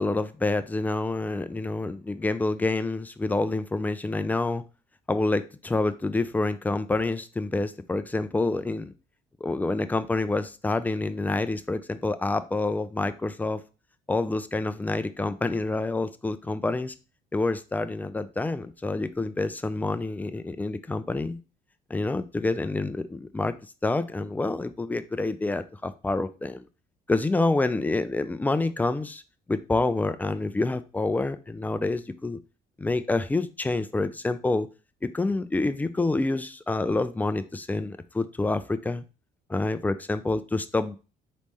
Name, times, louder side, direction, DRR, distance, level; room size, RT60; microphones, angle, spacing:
voice 1, 0.0-4.6 5.1-8.9 9.4-13.6 14.1-16.9 17.3-21.4 21.9-23.5 23.8-26.7 27.1-29.2 29.5-32.4 32.8-34.7 35.0-39.0 39.5-41.0, left 2 dB, 10° left, 11 dB, 0.4 m, -27 dB
4.1 x 3.1 x 3.5 m, 0.32 s
cardioid pair, 110°, 17 cm